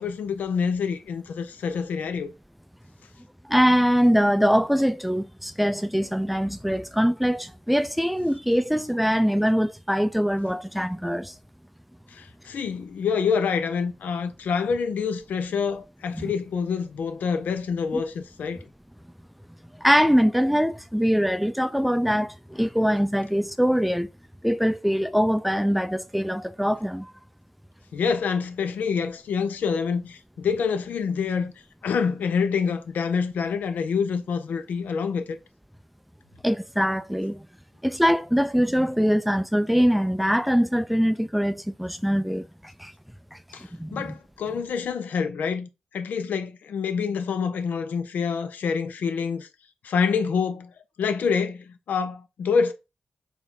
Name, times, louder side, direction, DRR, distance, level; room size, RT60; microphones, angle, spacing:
voice 1, 0.0-2.3 12.1-18.6 27.9-31.5 31.8-35.4 43.5-49.5 49.8-50.7 51.0-52.7, left 6 dB, 75° left, 0.6 m, -27 dB
voice 2, 3.5-11.3 16.1-16.3 17.9-18.0 19.8-24.1 24.4-27.1 36.4-37.4 37.8-42.5 42.8-42.9 43.3-43.4 43.8-44.1, equal, ahead, 0.4 m, -23 dB
4.2 x 2.9 x 3.7 m
supercardioid pair, 45°, 3 cm